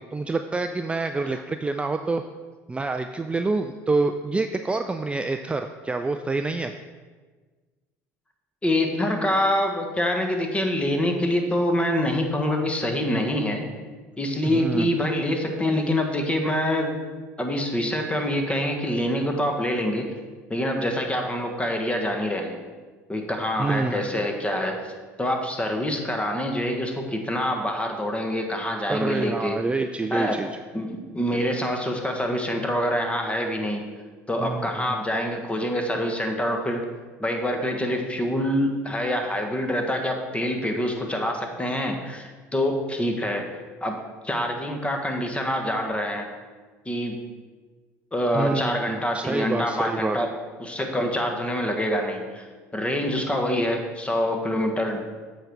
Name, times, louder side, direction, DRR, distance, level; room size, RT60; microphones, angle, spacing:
voice 1, 0.0-2.2 2.7-6.7 14.4-14.9 23.6-24.2 28.9-30.6 34.4-35.0 48.3-50.2, right 3 dB, 15° right, 7 dB, 0.4 m, -27 dB
voice 2, 8.6-13.6 14.2-17.0 17.4-20.1 20.5-22.6 23.1-24.9 25.2-29.6 30.1-30.4 30.7-33.8 34.3-36.9 37.2-43.5 43.8-46.3 46.8-47.3 48.1-50.3 50.6-52.4 52.7-55.0, left 1 dB, 15° left, 3 dB, 1.4 m, -26 dB
7.8 x 5.1 x 4.6 m, 1.4 s
hypercardioid pair, 80°, 7 cm